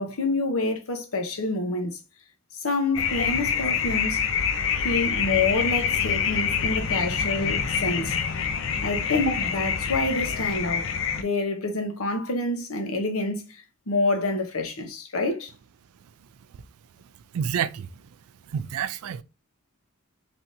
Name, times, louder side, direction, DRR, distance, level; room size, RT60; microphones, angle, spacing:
voice 1, 0.0-2.0 2.6-4.2 4.8-8.1 8.8-10.9 11.2-15.5, left 2 dB, 80° left, 0.8 m, -27 dB
sound 1, 2.9-11.2, left 7 dB, 60° left, 0.4 m, -26 dB
voice 2, 17.3-17.9 18.5-19.2, right 8 dB, 90° right, 0.4 m, -28 dB
3.4 x 2.8 x 2.6 m
head